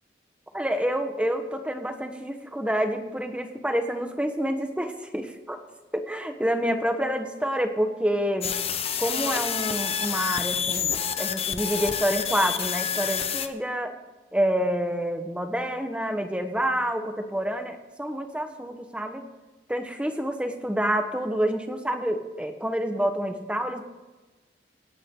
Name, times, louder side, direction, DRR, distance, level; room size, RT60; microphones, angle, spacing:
voice 1, 0.5-5.6 5.9-8.6 9.0-13.9 14.3-19.2 19.7-23.8, equal, 5° right, 6 dB, 1.3 m, -28 dB
sound 1, 8.4-13.5, left 8 dB, 35° left, 0.9 m, -28 dB
27.0 x 10.0 x 3.9 m, 1.2 s
head